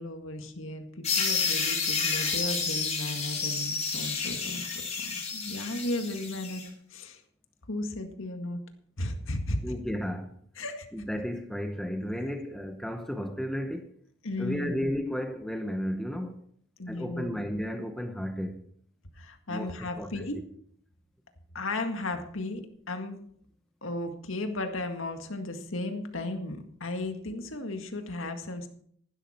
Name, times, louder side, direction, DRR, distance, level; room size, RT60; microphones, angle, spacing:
voice 1, 0.0-4.6 5.2-6.6 6.9-7.2 7.7-8.6 9.0-9.6 10.6-10.9 14.2-14.9 16.8-17.4 19.2-20.4 21.5-23.2 23.8-28.7, left 2 dB, 70° left, 1.9 m, -35 dB
sound 1, 1.0-6.6, left 5 dB, 30° left, 4.6 m, -30 dB
voice 2, 9.6-10.3 10.9-13.9 14.4-16.4 16.9-18.6 19.5-19.7 20.0-20.3, equal, ahead, 0.9 m, -33 dB
15.5 x 12.0 x 4.4 m
head